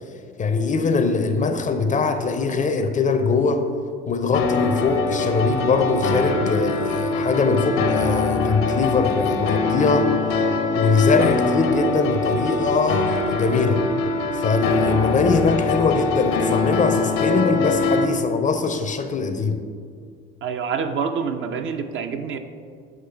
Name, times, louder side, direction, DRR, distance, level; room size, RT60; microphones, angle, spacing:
voice 1, 0.4-3.7 4.1-10.1 10.8-13.8 14.3-19.6, left 4 dB, 25° left, 7 dB, 0.6 m, -22 dB
sound 1, 4.3-18.0, left 3 dB, 65° left, 0.8 m, -23 dB
voice 2, 20.4-22.4, right 6 dB, 45° right, 6 dB, 0.6 m, -26 dB
8.0 x 3.2 x 5.7 m, 2.2 s
hypercardioid pair, 65°, 29 cm